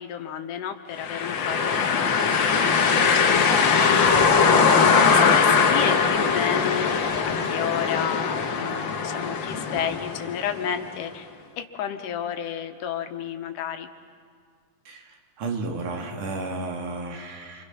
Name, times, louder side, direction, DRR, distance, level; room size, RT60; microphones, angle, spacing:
voice 1, 0.0-4.2 4.5-7.0 7.2-11.3 11.6-13.9, left 9 dB, 85° left, 6 dB, 2.7 m, -32 dB
sound 1, 1.0-10.8, left 5 dB, 55° left, 1.3 m, -21 dB
voice 2, 14.9-17.6, right 3 dB, 75° right, 2 dB, 3.6 m, -33 dB
29.5 x 25.0 x 5.9 m, 2.1 s
omnidirectional pair, 3.7 m